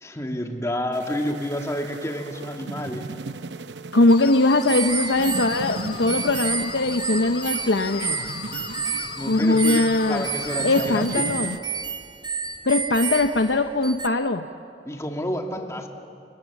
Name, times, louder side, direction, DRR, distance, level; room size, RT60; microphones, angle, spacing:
voice 1, 0.0-3.1 9.2-9.8 10.1-11.0 14.8-15.9, equal, 15° left, 3 dB, 2.2 m, -29 dB
sound 1, 0.9-11.6, right 3 dB, 85° right, 0.7 m, -38 dB
voice 2, 3.9-8.1 9.3-10.3 10.6-11.6 12.6-14.4, left 2 dB, 80° left, 7 dB, 0.8 m, -21 dB
sound 2, 4.1-11.1, left 6 dB, 60° left, 1.8 m, -37 dB
sound 3, 4.7-14.1, right 5 dB, 25° right, 0.9 m, -31 dB
29.5 x 25.5 x 7.3 m, 2.5 s
head